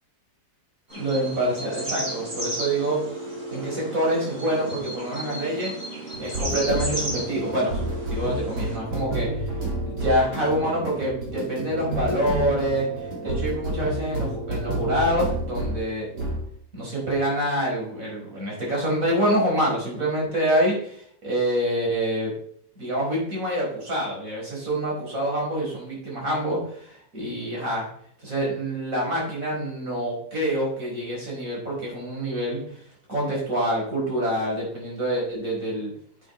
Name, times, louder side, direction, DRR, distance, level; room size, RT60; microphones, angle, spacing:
sound 1, 0.9-8.8, right 1 dB, 40° right, 4.9 m, -35 dB
voice 1, 0.9-3.0 3.5-5.7 6.2-9.5 9.9-16.0 16.7-22.3 22.8-27.9 28.2-32.6 33.1-35.9, right 1 dB, 55° right, -3 dB, 5.2 m, -26 dB
sound 2, 1.5-15.8 16.1-16.5, right 1 dB, 90° right, 3.1 m, -31 dB
9.5 x 8.3 x 4.4 m, 0.64 s
omnidirectional pair, 1.7 m